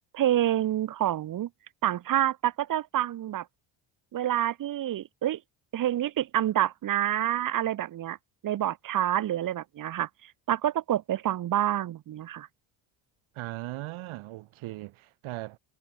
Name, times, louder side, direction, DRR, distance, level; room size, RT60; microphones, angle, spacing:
voice 1, 0.1-1.5 1.8-3.5 4.1-5.4 5.7-8.2 8.4-10.1 10.5-12.5, right 12 dB, 40° right, 0.7 m, -27 dB
voice 2, 13.3-15.6, right 17 dB, 75° right, 3.6 m, -38 dB
supercardioid pair, 65°, 49 cm